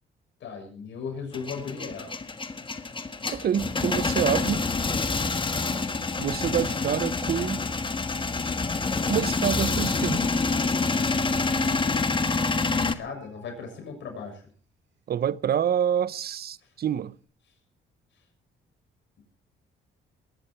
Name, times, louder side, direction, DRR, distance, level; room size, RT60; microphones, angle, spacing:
voice 1, 0.4-2.1 13.0-14.4, left 5 dB, 70° left, 6.9 m, -36 dB
Male speech man speaking / Vehicle / Engine starting, 1.3-12.9, left 3 dB, 25° left, 1.4 m, -27 dB
voice 2, 3.3-4.6 6.2-7.7 9.1-10.3 15.1-17.2, right 9 dB, 50° right, 0.7 m, -27 dB
Bird, 5.4-7.1 8.0-8.1 8.7-8.8 9.0-9.1 9.7-10.2 11.2-11.3 11.6-11.7 11.9-14.2 14.6-14.9 15.2-16.6 16.9-17.2, right 3 dB, 75° right, 6.0 m, -55 dB
21.5 x 11.0 x 4.6 m
cardioid pair, 90°, 20 cm